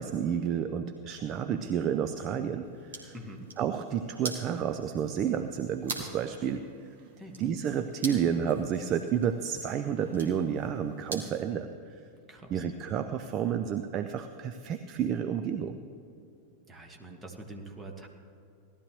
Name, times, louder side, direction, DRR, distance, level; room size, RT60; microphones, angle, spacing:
voice 1, 0.0-3.1 3.6-6.6 7.0-7.1 7.4-12.0 12.5-15.8, right 8 dB, 35° right, 8 dB, 0.5 m, -30 dB
sound 1, 2.6-11.5, right 3 dB, 70° right, 2.0 m, -44 dB
voice 2, 3.1-3.5 7.2-7.4 12.3-12.6 16.7-18.1, right 1 dB, 15° right, 2 dB, 1.6 m, -45 dB
18.0 x 12.5 x 3.1 m, 2.6 s
figure-of-eight pair, 90°, 0 cm